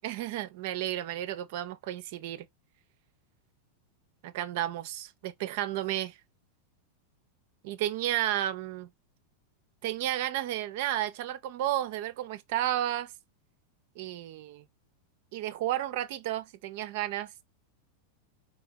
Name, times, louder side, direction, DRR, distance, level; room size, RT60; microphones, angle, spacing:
voice 1, 0.0-2.5 4.2-6.2 7.6-8.9 9.8-13.1 14.0-14.7 15.3-17.3, right 13 dB, 50° right, 0.4 m, -32 dB
3.5 x 2.7 x 2.7 m
figure-of-eight pair, 90°, 0 cm